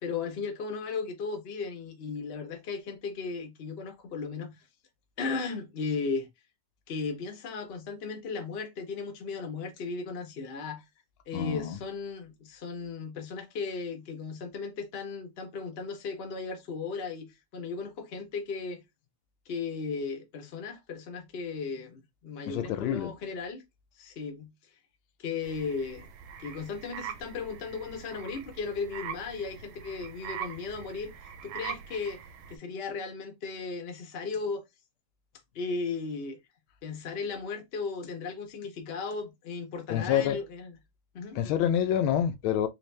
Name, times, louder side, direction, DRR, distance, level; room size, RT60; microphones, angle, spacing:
voice 1, 0.0-4.5 5.2-6.3 6.9-10.8 11.3-18.8 19.5-23.6 24.0-24.5 25.2-26.1 26.4-31.1 31.4-32.2 32.5-34.6 35.5-36.4 36.8-40.8 41.1-41.4, left 4 dB, 50° left, 0.8 m, -36 dB
voice 2, 11.3-11.8 22.5-23.1 39.9-40.4 41.3-42.7, left 9 dB, 85° left, 1.5 m, -27 dB
sound 1, 25.4-32.6, right 8 dB, 90° right, 1.5 m, -43 dB
4.2 x 2.4 x 3.2 m
omnidirectional pair, 2.2 m